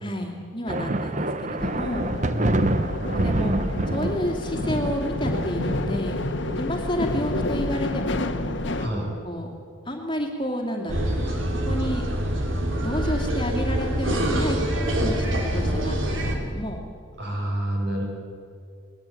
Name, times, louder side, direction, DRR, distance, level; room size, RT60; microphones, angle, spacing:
voice 1, 0.0-2.1 3.1-3.6 3.9-6.2 6.6-8.4 9.2-9.5 9.9-11.1 11.5-12.0 12.8-14.6 15.0-16.8, equal, 25° left, 1 dB, 2.4 m, -30 dB
sound 1, 0.7-8.0, right 1 dB, 35° right, 0.8 m, -28 dB
sound 2, 1.6-8.9, left 2 dB, 60° left, 1.3 m, -29 dB
voice 2, 2.3-3.0 8.8-9.1 17.2-18.0, right 1 dB, 55° right, -2 dB, 7.5 m, -28 dB
sound 3, 10.9-16.3, equal, 70° right, 3.4 m, -25 dB
20.5 x 20.5 x 8.5 m, 2.3 s
head